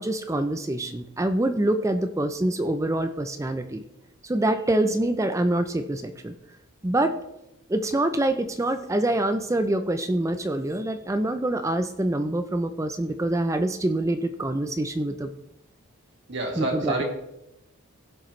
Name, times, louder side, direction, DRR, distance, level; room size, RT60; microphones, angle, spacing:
voice 1, 0.0-3.8 4.2-6.3 6.8-7.1 7.7-15.3 16.6-17.0, right 1 dB, 15° right, 8 dB, 0.4 m, -25 dB
voice 2, 16.3-17.0, right 2 dB, 55° right, 1 dB, 2.1 m, -28 dB
16.5 x 6.5 x 3.2 m, 0.86 s
head